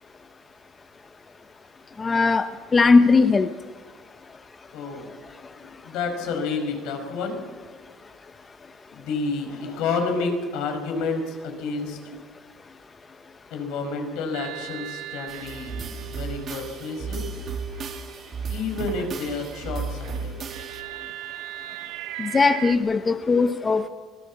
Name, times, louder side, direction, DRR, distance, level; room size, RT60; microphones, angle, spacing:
voice 1, 2.0-2.4 2.7-3.5 22.2-23.9, left 4 dB, 20° left, 9 dB, 0.8 m, -19 dB
voice 2, 4.7-5.1 5.5-7.4 8.9-12.0 13.5-17.3 18.5-20.4, left 4 dB, 75° left, 5 dB, 5.1 m, -30 dB
sound 1, 14.3-19.2 19.5-22.8, right 13 dB, 85° right, 1.2 m, -39 dB
sound 2, 15.3-20.8, right 5 dB, 40° right, 2.4 m, -34 dB
24.5 x 18.5 x 7.4 m, 1.5 s
cardioid pair, 135°, 0 cm